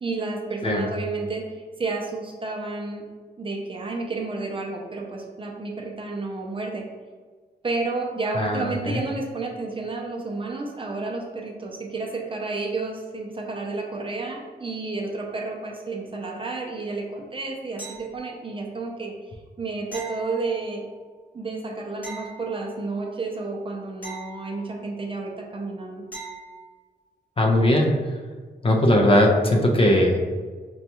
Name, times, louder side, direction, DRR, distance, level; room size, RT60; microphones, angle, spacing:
voice 1, 0.0-3.0 3.4-6.9 7.6-19.1 19.6-20.8 21.3-26.0, right 3 dB, 30° right, 0 dB, 0.5 m, -31 dB
voice 2, 8.3-9.0 27.4-28.2 28.6-30.3, left 1 dB, 30° left, 1 dB, 0.4 m, -19 dB
sound 1, 17.8-18.5 19.9-21.0 22.0-23.1 24.0-25.0 26.1-26.7 29.5-29.6, right 2 dB, 10° left, 1.0 m, -41 dB
5.1 x 2.3 x 2.9 m, 1.5 s
wide cardioid pair, 165°, 17 cm